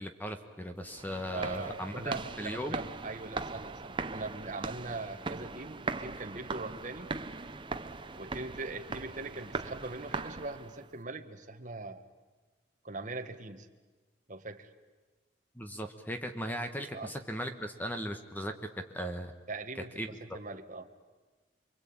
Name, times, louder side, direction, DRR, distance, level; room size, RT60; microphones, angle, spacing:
voice 1, 0.0-2.8 15.5-18.7 18.9-19.3 20.0-20.2, equal, 10° left, 6 dB, 1.3 m, -38 dB
sound 1, 0.8-10.9, right 3 dB, 25° right, 0.8 m, -40 dB
voice 2, 1.3-7.1 8.2-12.0 12.8-13.7 14.3-14.7 16.9-17.1 19.5-20.9, right 3 dB, 40° right, 5 dB, 1.6 m, -41 dB
28.5 x 23.0 x 8.8 m, 1.3 s
head